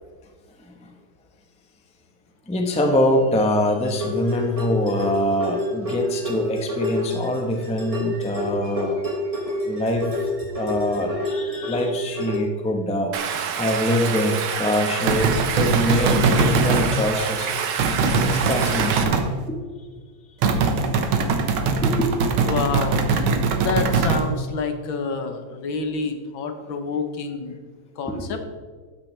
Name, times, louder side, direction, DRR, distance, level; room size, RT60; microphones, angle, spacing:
voice 1, 2.5-9.0 9.7-10.3 10.5-13.1 13.5-17.5 18.2-19.6 21.8-22.2 28.1-28.4, left 1 dB, 5° left, 2 dB, 0.6 m, -24 dB
sound 1, 3.8-12.4, left 1 dB, 20° right, 1.2 m, -28 dB
Stream, 13.1-19.0, right 7 dB, 65° right, 1.4 m, -27 dB
sound 2, 15.1-16.9 17.8-19.3 20.4-24.3, right 4 dB, 90° right, 1.8 m, -21 dB
voice 2, 22.4-23.1 23.6-27.6 28.0-28.4, left 4 dB, 75° left, 6 dB, 1.8 m, -28 dB
13.0 x 9.3 x 3.3 m, 1.5 s
omnidirectional pair, 2.2 m